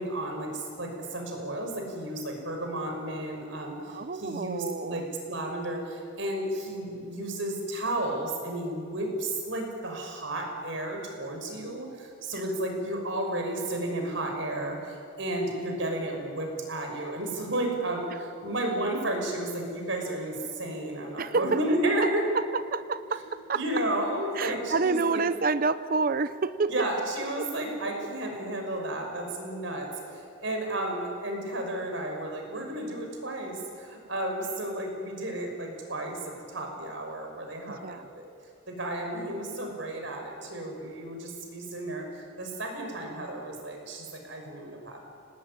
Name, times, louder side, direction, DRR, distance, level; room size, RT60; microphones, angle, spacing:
voice 1, 0.0-22.3 23.5-25.2 26.7-38.3 38.7-45.0, right 1 dB, 70° right, 2 dB, 6.1 m, -32 dB
voice 2, 3.9-5.0 12.3-12.4 21.2-21.6 22.0-22.1 22.3-23.6 24.3-26.9 27.4-27.5 37.7-38.1, right 4 dB, 45° right, 13 dB, 0.6 m, -28 dB
sound 1, 17.7-31.4, left 1 dB, 80° left, 4.2 m, -51 dB
26.0 x 19.5 x 9.9 m, 2.4 s
head